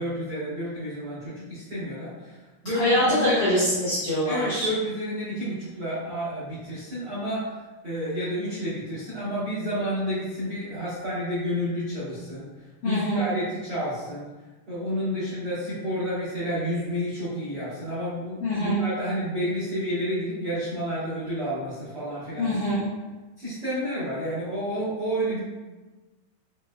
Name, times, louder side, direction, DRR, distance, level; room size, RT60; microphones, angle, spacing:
voice 1, 0.0-3.4 4.2-12.5 12.8-14.3 14.7-22.6 23.4-25.4, equal, 90° right, -13 dB, 1.2 m, -30 dB
voice 2, 2.7-4.7 12.8-13.3 18.4-18.8 22.4-22.8, left 1 dB, 90° left, -9 dB, 1.7 m, -24 dB
6.3 x 2.2 x 2.2 m, 1.2 s
omnidirectional pair, 4.6 m